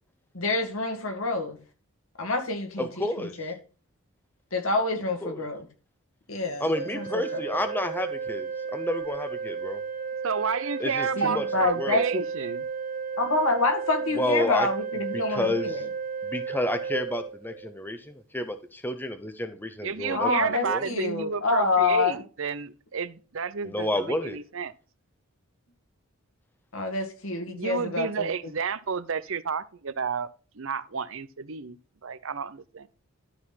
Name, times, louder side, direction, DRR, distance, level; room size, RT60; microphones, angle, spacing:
voice 1, 0.3-1.6 2.2-3.5 4.5-5.6 6.3-6.7 6.9-7.1 7.3-7.4 11.2-12.2 13.2-15.9 20.1-22.2 26.7-28.3, left 3 dB, 70° left, 2.1 m, -27 dB
voice 2, 2.8-3.3 5.2-5.4 6.6-9.8 10.8-11.4 11.8-12.0 14.1-14.7 15.1-15.8 16.2-20.9 23.6-24.4, left 1 dB, 10° left, 0.8 m, -30 dB
Organ, 6.7-17.8, right 5 dB, 40° right, 1.7 m, -33 dB
voice 3, 10.2-12.7 19.8-24.7 27.5-31.8 32.0-32.9, right 6 dB, 65° right, 0.6 m, -31 dB
12.5 x 4.3 x 5.7 m
head